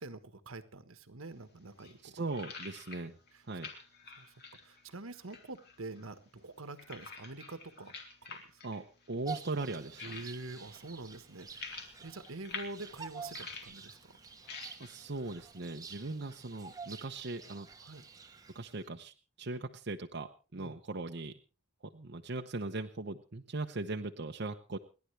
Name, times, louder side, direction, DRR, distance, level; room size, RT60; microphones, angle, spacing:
voice 1, 0.0-2.2 3.3-3.4 4.1-4.3 4.6-8.6 10.0-14.2 17.8-18.0 20.6-20.8, right 2 dB, 80° right, 1.4 m, -46 dB
sound 1, 1.2-17.0, left 4 dB, 50° left, 3.1 m, -50 dB
voice 2, 2.0-3.1 3.5-3.7 8.6-10.1 14.8-17.7 18.5-21.3 21.8-24.8, right 2 dB, 55° right, 0.9 m, -39 dB
Bird vocalization bird call bird song, 9.2-18.9, right 5 dB, 15° right, 1.1 m, -49 dB
29.5 x 10.5 x 3.3 m
head